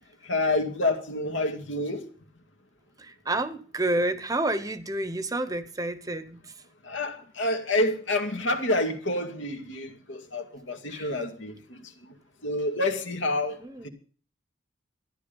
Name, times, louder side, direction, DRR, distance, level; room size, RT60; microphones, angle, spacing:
voice 1, 0.2-2.0 6.8-11.8 12.4-13.6 13.8-13.9, left 2 dB, 80° left, 2.2 m, -28 dB
voice 2, 3.0-6.4 10.9-11.1 13.6-13.9, right 2 dB, 20° right, 0.8 m, -29 dB
14.0 x 11.0 x 5.3 m
head